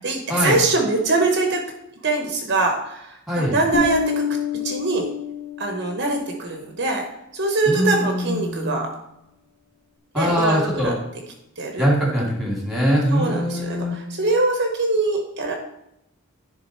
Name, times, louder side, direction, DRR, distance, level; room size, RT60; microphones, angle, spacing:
voice 1, 0.0-1.6 2.0-4.2 4.5-5.1 5.6-7.0 7.3-8.9 10.1-10.9 11.6-11.8 13.1-15.6, right 2 dB, 55° right, 2 dB, 1.0 m, -23 dB
Bass guitar, 3.7-6.2, left 4 dB, 55° left, 1.0 m, -27 dB
voice 2, 7.7-8.8 10.1-10.9 11.8-14.0, equal, ahead, -4 dB, 2.7 m, -22 dB
10.5 x 3.9 x 4.4 m, 0.84 s
head